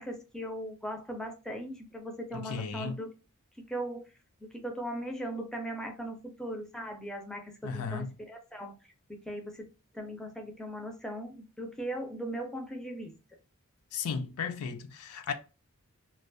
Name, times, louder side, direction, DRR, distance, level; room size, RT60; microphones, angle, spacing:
voice 1, 0.0-3.1 3.7-4.1 4.5-8.7 9.1-9.7 9.9-13.1, equal, 5° left, 0.4 m, -38 dB
voice 2, 2.3-3.0 7.6-8.1 13.9-15.3, left 5 dB, 80° left, 0.4 m, -35 dB
2.4 x 2.2 x 2.5 m
head